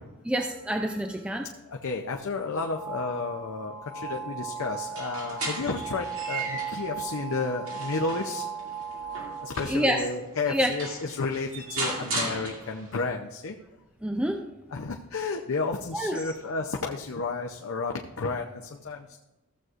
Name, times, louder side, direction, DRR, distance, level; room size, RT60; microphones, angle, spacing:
voice 1, 0.3-1.5 9.7-10.0 10.5-10.7 14.0-14.4 15.9-16.3, equal, 5° right, 3 dB, 0.4 m, -27 dB
voice 2, 1.7-8.4 9.4-13.6 14.7-19.2, left 4 dB, 70° left, 2 dB, 0.6 m, -32 dB
sound 1, 2.5-10.1, right 6 dB, 80° right, 1.8 m, -37 dB
sound 2, 4.8-6.9 7.4-10.0 10.5-10.6 10.8-13.0, right 2 dB, 65° right, 2.4 m, -35 dB
15.0 x 7.7 x 2.5 m, 1.1 s
head